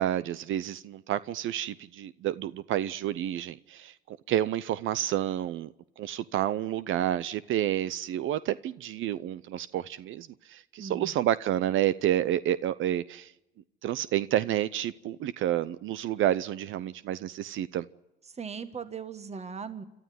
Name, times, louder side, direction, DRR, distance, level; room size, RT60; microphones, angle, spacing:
voice 1, 0.0-13.3 13.8-17.8, right 12 dB, 80° right, 0.7 m, -29 dB
voice 2, 10.8-11.1 18.4-19.8, right 6 dB, 35° right, 1.7 m, -38 dB
28.0 x 13.0 x 9.5 m
cardioid pair, 90°, 20 cm